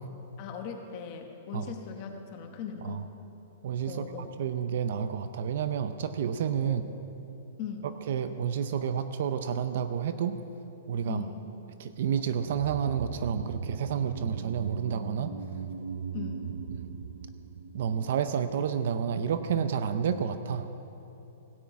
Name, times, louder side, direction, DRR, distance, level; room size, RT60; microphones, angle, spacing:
voice 1, 0.4-3.1 3.8-4.3 6.6-6.9 7.6-7.9 11.1-11.4 16.1-16.5, left 7 dB, 25° left, 4 dB, 1.0 m, -39 dB
voice 2, 3.6-6.8 7.8-10.4 10.9-11.3 11.8-15.3 17.7-20.7, right 8 dB, 45° right, 10 dB, 0.5 m, -30 dB
sound 1, 12.3-18.8 19.0-19.1, right 6 dB, 85° right, 0.7 m, -39 dB
17.0 x 5.9 x 8.4 m, 3.0 s
hypercardioid pair, 180°, 0 cm